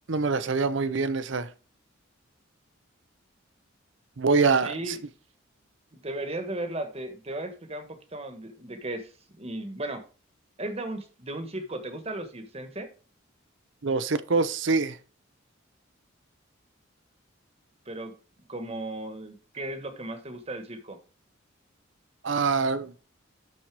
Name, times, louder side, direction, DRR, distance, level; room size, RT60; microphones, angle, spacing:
voice 1, 0.1-1.5 4.2-5.0 13.8-15.0 22.2-22.9, right 4 dB, 65° right, 0.7 m, -25 dB
voice 2, 4.6-5.0 6.0-9.1 9.4-10.0 10.6-12.9 17.9-18.1 18.5-21.0, right 1 dB, 30° right, 1.3 m, -36 dB
12.0 x 4.3 x 4.7 m
head